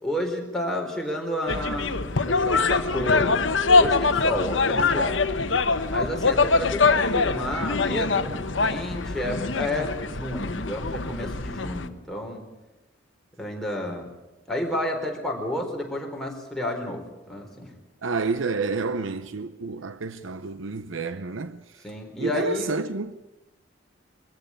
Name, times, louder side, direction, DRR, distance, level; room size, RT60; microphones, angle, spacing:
voice 1, 0.0-5.2 5.9-12.5 13.4-14.1 14.5-17.7 21.8-22.8, left 1 dB, 5° left, 4.0 m, -31 dB
sound 1, 1.5-11.9, left 4 dB, 70° left, 1.1 m, -23 dB
voice 2, 18.0-21.6 22.2-23.1, right 4 dB, 90° right, 0.8 m, -29 dB
23.5 x 14.5 x 8.7 m
head